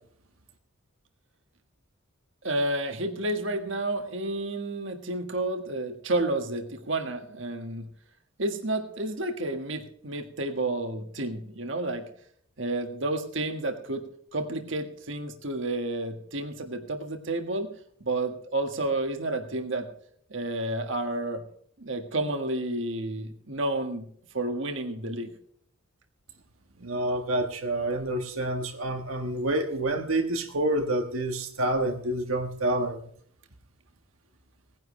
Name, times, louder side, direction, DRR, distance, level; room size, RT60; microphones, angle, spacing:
voice 1, 2.4-7.9 8.4-12.0 12.6-14.0 14.3-17.7 18.0-19.9 20.3-21.4 21.8-24.0 24.3-25.3, right 2 dB, 60° right, 5 dB, 1.6 m, -30 dB
voice 2, 26.8-33.0, right 1 dB, 85° right, 5 dB, 1.6 m, -28 dB
18.5 x 10.5 x 3.3 m, 0.63 s
head